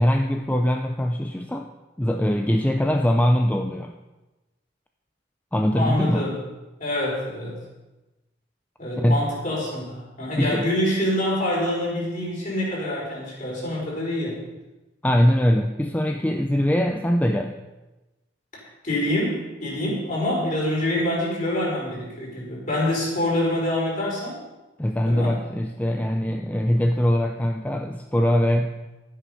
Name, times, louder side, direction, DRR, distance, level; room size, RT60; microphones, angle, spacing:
voice 1, 0.0-1.7 2.0-4.0 5.5-6.3 9.0-9.3 10.4-10.7 15.0-17.6 24.8-28.8, equal, 10° left, 4 dB, 0.5 m, -22 dB
voice 2, 5.7-6.4 6.8-7.6 8.8-14.4 18.8-24.4 25.1-25.4, left 1 dB, 45° left, -4 dB, 4.8 m, -26 dB
12.0 x 9.5 x 5.6 m, 1.1 s
head